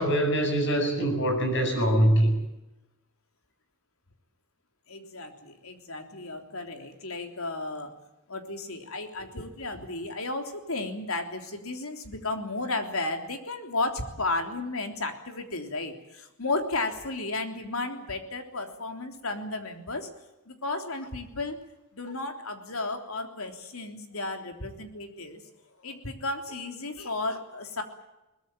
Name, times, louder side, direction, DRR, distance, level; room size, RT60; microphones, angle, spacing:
voice 1, 0.0-2.4, right 1 dB, 55° left, 4 dB, 7.9 m, -23 dB
voice 2, 4.9-7.9 8.3-20.1 20.5-21.6 21.9-25.4 25.8-27.8, left 2 dB, 80° left, 6 dB, 3.4 m, -33 dB
22.0 x 20.0 x 9.0 m, 0.97 s
head